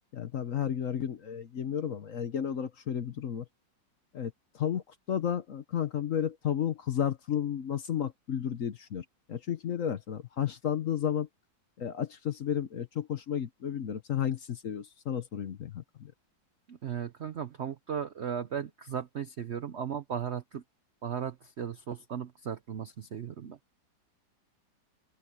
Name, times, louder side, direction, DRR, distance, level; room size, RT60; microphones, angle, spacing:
voice 1, 0.1-3.4 4.1-4.8 5.1-11.3 11.8-16.1, left 9 dB, 55° left, 1.1 m, -32 dB
voice 2, 16.7-20.6 21.0-23.6, right 8 dB, 60° right, 0.7 m, -36 dB
omnidirectional pair, 2.0 m